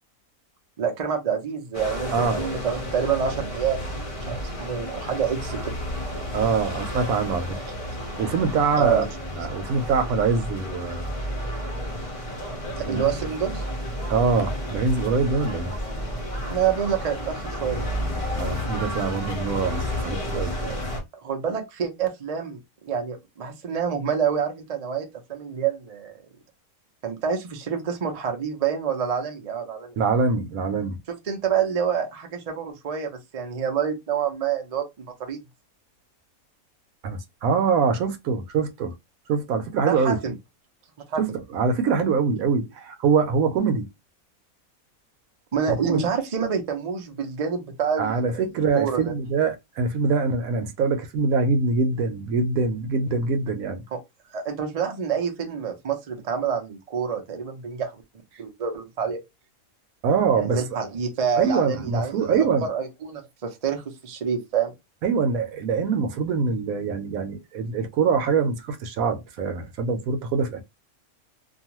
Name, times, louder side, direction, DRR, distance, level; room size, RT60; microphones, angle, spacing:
voice 1, 0.8-3.9 4.2-5.7 8.7-9.1 12.8-13.6 16.4-17.8 20.7-20.8 21.2-26.2 27.0-30.0 31.3-35.4 39.9-40.3 41.1-41.2 45.5-48.4 48.7-49.1 53.9-54.0 54.3-58.0 58.4-59.2 60.4-64.7, right 7 dB, 50° right, 0.4 m, -27 dB
sound 1, 1.7-21.0, equal, 35° left, 0.6 m, -31 dB
voice 2, 2.1-2.4 6.3-7.6 8.2-9.0 9.3-11.1 12.9-13.1 14.1-15.8 18.4-20.5 30.0-31.0 37.0-38.9 39.3-40.2 41.2-43.9 45.8-46.0 48.0-53.8 60.0-60.6 61.4-62.7 65.0-70.6, right 5 dB, 75° right, 1.0 m, -24 dB
2.5 x 2.3 x 2.8 m
omnidirectional pair, 1.5 m